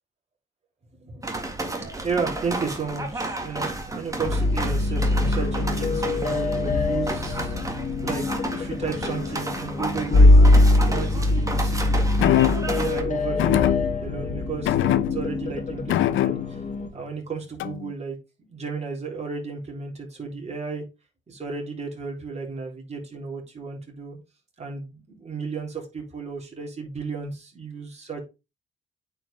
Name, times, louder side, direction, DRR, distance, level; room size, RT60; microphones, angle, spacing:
voice 1, 1.0-1.4 1.8-7.5 8.0-12.1 12.6-13.6 14.0-16.6 16.9-18.2 18.5-20.8 21.3-24.2 24.6-28.2, right 5 dB, 35° right, -1 dB, 3.7 m, -33 dB
sound 1, 1.2-13.0, right 2 dB, 15° right, 1.8 m, -32 dB
sound 2, 4.2-16.9, left 2 dB, 40° left, 2.1 m, -22 dB
sound 3, 12.2-12.8 13.4-14.2 14.7-15.5 15.9-16.7 17.6-17.9, left 14 dB, 80° left, 0.6 m, -23 dB
8.8 x 4.9 x 3.5 m, 0.27 s
cardioid pair, 90°, 20 cm